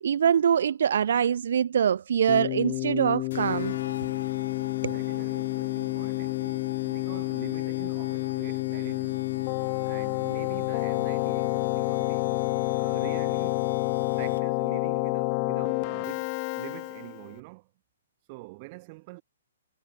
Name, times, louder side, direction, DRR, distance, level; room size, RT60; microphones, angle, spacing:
voice 1, 0.0-3.8 4.8-5.0, right 8 dB, 65° right, 0.3 m, -24 dB
Keyboard (musical), 2.3-17.3, left 40 dB or more, 30° left, 0.7 m, -29 dB
sound 1, 3.3-14.7, left 8 dB, 65° left, 5.8 m, -41 dB
voice 2, 4.8-9.3 9.8-12.3 12.7-13.7 14.2-17.7 18.3-19.2, right 25 dB, 30° right, 3.5 m, -45 dB
hypercardioid pair, 155°, 0 cm